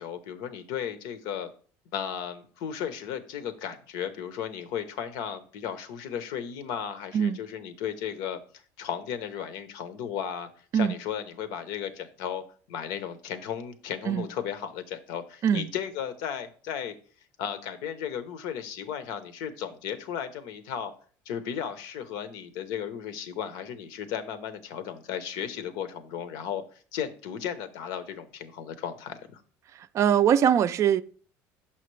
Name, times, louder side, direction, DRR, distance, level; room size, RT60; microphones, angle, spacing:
voice 1, 0.0-1.5 1.9-12.4 12.7-17.0 17.4-20.9 21.3-29.4, left 8 dB, 80° left, 0.7 m, -35 dB
voice 2, 29.9-31.0, right 9 dB, 45° right, 0.3 m, -22 dB
5.8 x 5.7 x 3.1 m
cardioid pair, 110°, 7 cm